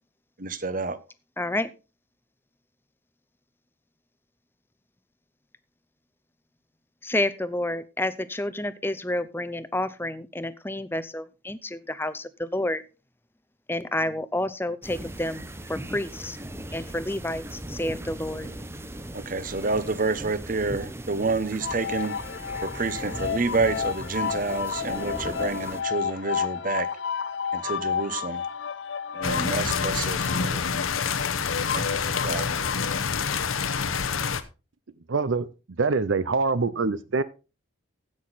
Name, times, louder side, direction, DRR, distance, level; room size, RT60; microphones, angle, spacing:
voice 1, 0.4-1.0 19.3-22.1 22.6-26.9 27.5-28.4 29.1-30.6 31.7-32.5, right 3 dB, 40° right, 0.9 m, -29 dB
voice 2, 1.4-1.7 7.0-12.8 13.7-15.4 15.7-16.4 16.7-18.5, left 1 dB, 10° left, 0.6 m, -29 dB
sound 1, 14.8-25.8, right 1 dB, 10° right, 0.8 m, -39 dB
sound 2, 21.6-33.0, left 7 dB, 60° left, 0.5 m, -31 dB
sound 3, 29.2-34.4, left 6 dB, 85° left, 0.9 m, -27 dB
voice 3, 35.1-35.5 35.8-37.2, right 4 dB, 70° right, 0.6 m, -24 dB
16.0 x 6.2 x 4.1 m
head